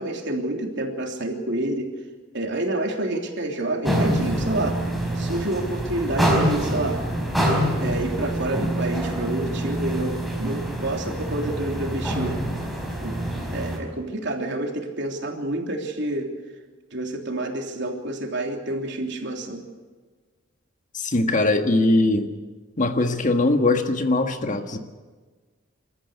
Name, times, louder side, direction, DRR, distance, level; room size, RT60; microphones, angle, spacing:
voice 1, 0.0-1.9 2.3-4.8 5.1-7.0 7.8-12.4 13.0-13.2 13.5-16.3 16.9-19.6, right 1 dB, 65° right, 2 dB, 3.4 m, -28 dB
sound 1, 3.8-13.8, right 1 dB, ahead, 4.7 m, -26 dB
voice 2, 20.9-22.3 22.8-24.8, left 2 dB, 40° left, 6 dB, 1.6 m, -21 dB
27.5 x 14.0 x 8.1 m, 1.4 s
head